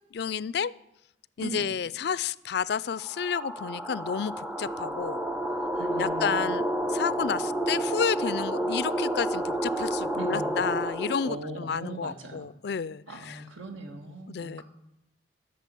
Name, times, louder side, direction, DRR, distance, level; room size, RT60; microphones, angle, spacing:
voice 1, 0.1-0.7 1.4-5.2 6.0-13.4 14.3-14.6, left 6 dB, 55° left, 19 dB, 0.4 m, -31 dB
sound 1, 3.0-11.4, right 1 dB, 5° right, 0.4 m, -30 dB
voice 2, 5.8-6.3 10.2-10.6 11.2-12.5 13.1-14.6, right 1 dB, 85° right, 5 dB, 1.9 m, -39 dB
11.5 x 6.7 x 9.2 m, 0.86 s
head